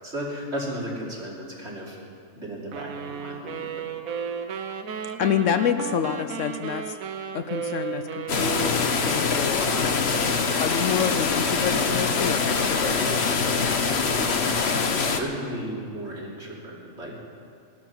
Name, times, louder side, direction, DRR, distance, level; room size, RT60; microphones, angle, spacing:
voice 1, 0.0-2.0 2.3-3.7 15.0-17.2, right 1 dB, 50° right, -4 dB, 3.3 m, -34 dB
sound 1, 2.7-9.9, right 7 dB, 80° right, 1.3 m, -34 dB
voice 2, 5.0-7.0 7.3-13.7, left 8 dB, 70° left, 9 dB, 0.9 m, -28 dB
sound 2, 8.3-15.2, left 4 dB, 50° left, 1.2 m, -24 dB
18.0 x 12.0 x 6.0 m, 2.3 s
omnidirectional pair, 1.4 m